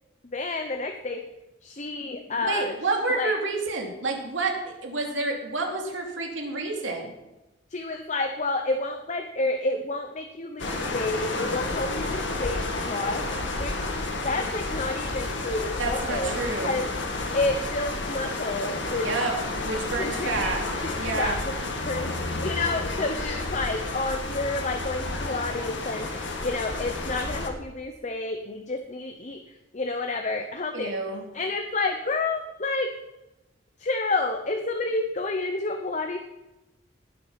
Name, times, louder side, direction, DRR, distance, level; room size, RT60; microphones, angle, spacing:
voice 1, 0.2-1.2 1.6-2.8 3.1-3.3 7.7-13.2 13.5-13.9 14.2-16.9 17.3-19.1 20.0-20.5 20.8-21.5 21.8-22.1 22.4-26.1 26.4-29.4 29.7-30.9 31.3-32.9 33.8-36.2, left 2 dB, 40° left, 5 dB, 0.9 m, -30 dB
voice 2, 2.4-4.5 4.8-7.1 15.8-16.8 19.0-19.3 19.6-20.6 21.0-21.4 30.7-31.2, right 3 dB, 80° right, 1 dB, 2.9 m, -29 dB
sound 1, 10.6-27.5, left 2 dB, 70° left, 1.9 m, -31 dB
19.0 x 7.6 x 5.8 m, 0.99 s
head